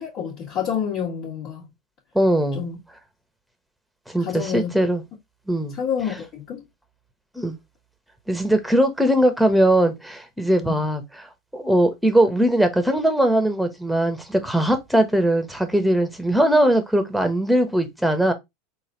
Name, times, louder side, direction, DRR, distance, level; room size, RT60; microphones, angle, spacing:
voice 1, 0.0-1.6 2.5-2.8 4.2-4.7 5.7-6.6 10.7-10.8, left 8 dB, 50° left, 1.8 m, -28 dB
voice 2, 2.1-2.6 4.1-5.0 5.5-5.7 7.3-7.6 8.3-11.0 11.5-18.3, right 1 dB, ahead, 1.1 m, -20 dB
4.0 x 2.6 x 3.7 m
hypercardioid pair, 90°, 0 cm